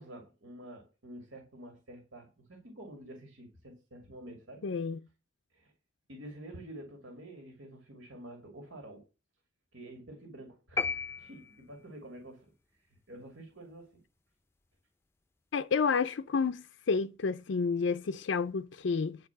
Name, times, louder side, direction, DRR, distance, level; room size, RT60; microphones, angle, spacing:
voice 1, 0.0-4.7 5.5-5.7 6.1-9.1 9.7-10.9 11.2-12.5 13.1-14.0, right 1 dB, 80° right, 2.6 m, -48 dB
voice 2, 4.6-5.0 15.5-19.2, left 5 dB, 70° left, 0.4 m, -30 dB
sound 1, 10.8-12.0, left 5 dB, 15° left, 0.5 m, -34 dB
9.5 x 4.6 x 7.1 m
head